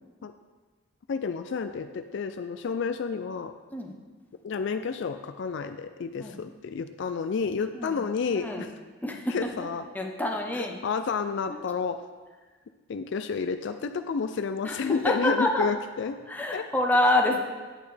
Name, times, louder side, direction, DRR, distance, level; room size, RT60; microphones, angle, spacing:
voice 1, 1.1-3.5 4.4-8.7 9.3-9.9 10.5-12.0 12.9-16.2 16.5-16.6 17.3-17.4, left 5 dB, 60° left, 8 dB, 0.4 m, -30 dB
voice 2, 9.0-9.5 9.9-10.8 11.5-11.6 14.6-15.7 16.3-17.4, left 1 dB, 10° left, 1 dB, 0.7 m, -27 dB
9.2 x 8.5 x 3.3 m, 1.3 s
head